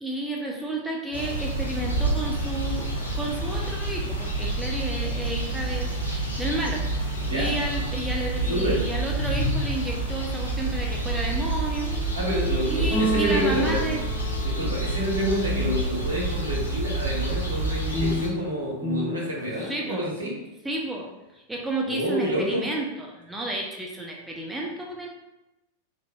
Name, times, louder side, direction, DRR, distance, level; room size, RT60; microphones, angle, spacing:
voice 1, 0.0-2.9 3.2-6.9 7.3-11.9 12.7-14.0 19.6-20.1 20.6-25.1, right 1 dB, 5° right, -1 dB, 0.4 m, -31 dB
sound 1, 1.1-18.3, right 2 dB, 80° left, 0.6 m, -28 dB
voice 2, 8.5-8.8 12.1-13.9 14.4-20.3 21.9-22.7, equal, 70° right, -4 dB, 0.9 m, -28 dB
sound 2, 11.8-16.1 17.9-20.0, left 1 dB, 20° left, 1.0 m, -32 dB
3.1 x 2.4 x 2.3 m, 0.99 s
figure-of-eight pair, 90°, 0 cm